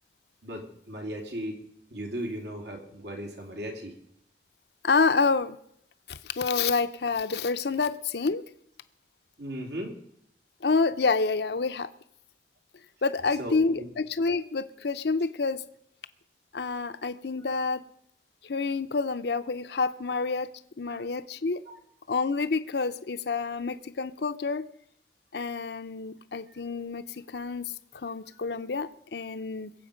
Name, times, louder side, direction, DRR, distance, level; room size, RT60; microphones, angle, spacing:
voice 1, 0.4-1.6 1.9-3.9 7.8-7.9 9.4-9.9 13.4-13.9 17.4-17.5 20.8-21.0 21.7-21.8, equal, 85° right, 1 dB, 3.2 m, -37 dB
voice 2, 4.8-5.6 6.1-8.4 10.6-11.9 13.0-15.6 16.5-17.8 18.4-20.5 20.8-21.6 22.1-24.7 25.3-29.7, left 4 dB, 70° left, 12 dB, 0.6 m, -28 dB
22.0 x 7.8 x 5.1 m, 0.70 s
head